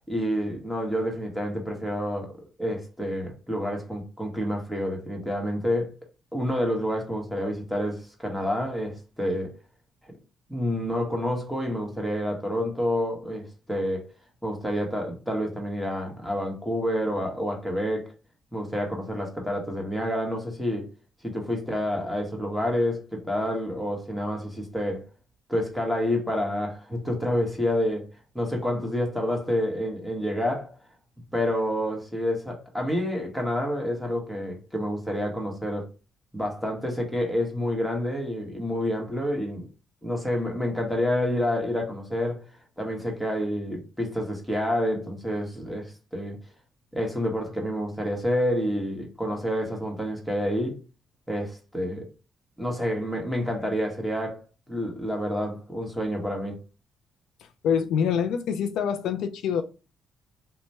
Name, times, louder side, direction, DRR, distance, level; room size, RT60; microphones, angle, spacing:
voice 1, 0.1-5.9 6.3-9.5 10.1-10.2 10.5-14.1 14.4-18.1 18.5-20.9 21.2-25.1 25.5-28.1 28.3-30.7 31.3-35.9 36.3-39.7 40.0-42.5 42.8-46.4 46.9-50.8 51.3-52.1 52.6-56.6, equal, ahead, 1.2 m, -28 dB
voice 2, 57.6-59.6, left 7 dB, 80° left, 0.4 m, -25 dB
3.1 x 2.2 x 4.2 m
cardioid pair, 90°, 0 cm